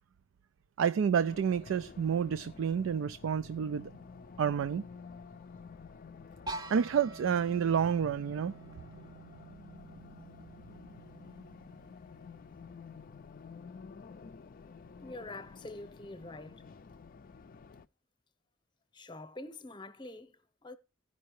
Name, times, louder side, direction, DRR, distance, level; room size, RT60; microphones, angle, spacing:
voice 1, 0.8-3.9 4.4-4.8 6.7-8.5, right 7 dB, 75° right, 0.3 m, -29 dB
Race car auto racing, 1.3-17.9, left 5 dB, 45° left, 0.4 m, -51 dB
sound 1, 6.5-12.3, right 3 dB, 20° right, 0.6 m, -47 dB
voice 2, 15.0-16.7 18.9-20.8, left 2 dB, 25° left, 0.9 m, -46 dB
15.5 x 5.4 x 3.1 m
head